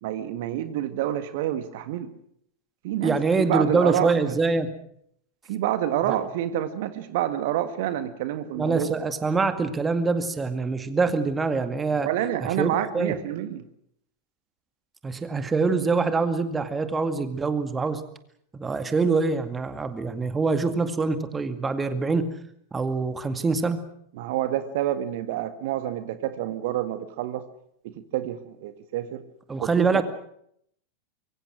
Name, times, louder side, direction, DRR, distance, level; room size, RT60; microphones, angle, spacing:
voice 1, 0.0-2.1 2.8-4.3 5.5-8.9 12.0-13.6 24.1-27.4 27.8-29.2 29.6-30.0, right 12 dB, 50° right, 11 dB, 1.8 m, -28 dB
voice 2, 3.0-4.7 6.1-6.2 8.6-12.1 12.6-13.2 15.0-18.0 18.5-22.3 22.7-23.8 29.5-30.0, right 4 dB, 15° right, 10 dB, 2.1 m, -24 dB
25.5 x 23.5 x 6.3 m, 0.70 s
figure-of-eight pair, 90°, 0 cm